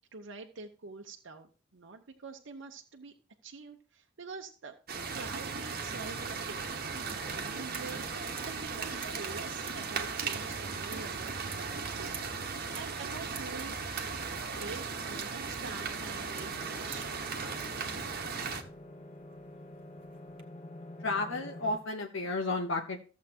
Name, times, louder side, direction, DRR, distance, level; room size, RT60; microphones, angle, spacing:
voice 1, 0.1-3.1 3.4-4.8 5.1-6.7 7.0-12.1 12.7-13.9 14.5-17.4, right 4 dB, 70° right, 3 dB, 0.9 m, -46 dB
sound 1, 4.9-18.6, right 5 dB, 50° right, 1.2 m, -37 dB
sound 2, 5.8-20.4, right 6 dB, 30° right, 1.4 m, -53 dB
sound 3, 15.2-21.8, left 1 dB, 35° left, 1.0 m, -49 dB
voice 2, 21.0-23.0, left 2 dB, 70° left, 3 dB, 1.0 m, -32 dB
14.5 x 7.4 x 2.9 m, 0.37 s
head